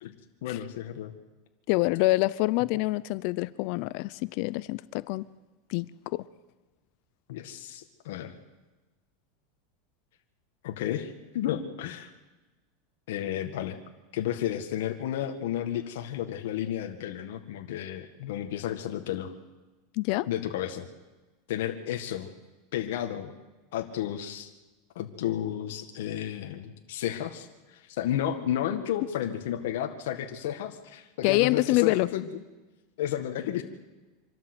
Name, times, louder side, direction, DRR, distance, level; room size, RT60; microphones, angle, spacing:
voice 1, 0.0-1.1 7.3-8.3 10.6-12.1 13.1-13.8 14.1-19.3 20.3-20.9 21.5-22.3 22.7-23.3 23.7-24.5 25.0-32.4 33.0-33.6, left 11 dB, 75° left, 5 dB, 1.8 m, -32 dB
voice 2, 1.7-5.3 5.7-6.3 19.9-20.3 31.2-32.1, left 20 dB, 55° left, 18 dB, 0.6 m, -26 dB
25.5 x 13.0 x 8.0 m, 1.2 s
supercardioid pair, 145°, 0 cm